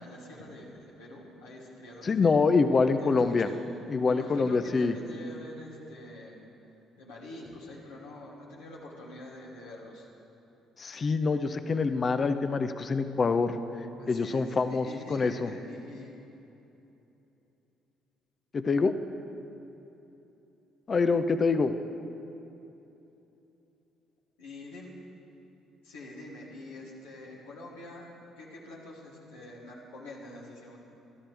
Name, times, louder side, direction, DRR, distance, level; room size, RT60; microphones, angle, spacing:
voice 1, 0.0-2.4 3.0-3.5 4.0-6.4 7.0-10.1 14.0-16.1 24.4-24.9 25.8-30.8, left 1 dB, 85° left, -6 dB, 3.0 m, -46 dB
voice 2, 2.0-3.5 3.9-4.9 10.8-13.6 14.1-15.5 18.5-18.9 20.9-21.7, left 4 dB, 40° left, 10 dB, 0.9 m, -25 dB
23.5 x 13.0 x 3.5 m, 3.0 s
hypercardioid pair, 50°, 0 cm